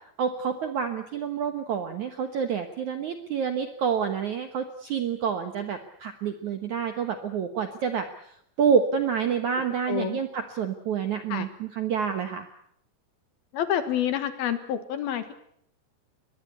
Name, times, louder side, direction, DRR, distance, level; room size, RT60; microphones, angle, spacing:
voice 1, 0.2-8.1 8.6-12.5, right 7 dB, 65° right, 8 dB, 1.9 m, -28 dB
voice 2, 9.8-10.2 11.3-11.5 13.5-15.3, left 10 dB, 65° left, 11 dB, 3.0 m, -28 dB
23.5 x 21.0 x 8.2 m, 0.68 s
omnidirectional pair, 5.2 m